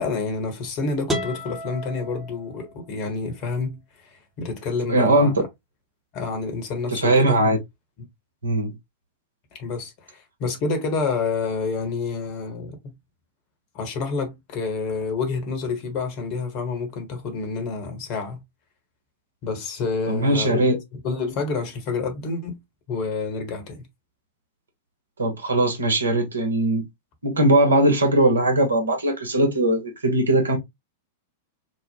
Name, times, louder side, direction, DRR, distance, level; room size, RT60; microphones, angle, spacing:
voice 1, 0.0-5.3 6.1-7.4 9.6-12.9 13.7-18.4 19.4-22.6 22.9-23.8, left 4 dB, 45° left, 1.2 m, -28 dB
sound 1, 1.1-3.0, equal, 15° right, 0.9 m, -32 dB
voice 2, 4.9-5.3 6.9-7.6 8.4-8.7 20.1-20.8 25.2-26.8 27.2-30.6, right 1 dB, 80° right, 0.9 m, -20 dB
3.1 x 2.1 x 2.9 m
figure-of-eight pair, 95°, 0 cm